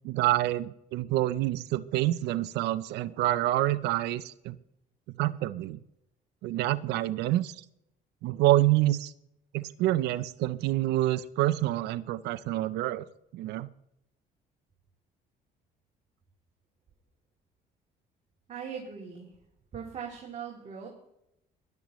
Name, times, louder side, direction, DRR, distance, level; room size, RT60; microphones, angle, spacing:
voice 1, 0.0-4.6 5.2-5.8 6.4-7.6 8.2-9.1 9.5-13.1 13.3-13.7, right 15 dB, 85° right, 15 dB, 0.6 m, -27 dB
voice 2, 18.5-19.3 19.7-20.9, right 7 dB, 40° right, -3 dB, 2.9 m, -40 dB
19.0 x 12.0 x 3.1 m, 0.80 s
cardioid pair, 110°, 17 cm